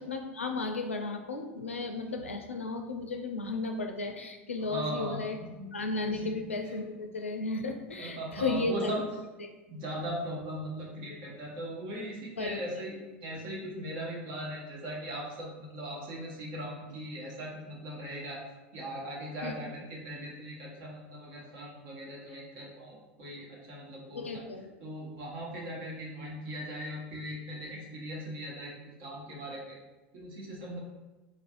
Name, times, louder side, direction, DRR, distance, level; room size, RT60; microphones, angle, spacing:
voice 1, 0.0-5.4 5.7-9.1 9.4-9.5 12.4-12.6 19.4-19.6 24.2-24.7, left 3 dB, 90° left, 4 dB, 0.4 m, -34 dB
voice 2, 4.6-5.2 5.6-5.7 6.1-6.4 7.9-9.0 9.7-18.4 18.7-24.4 24.8-28.7 29.0-29.8 30.1-30.8, right 1 dB, 60° right, -3 dB, 1.1 m, -39 dB
4.0 x 2.5 x 2.4 m, 1.1 s
hypercardioid pair, 80°, 7 cm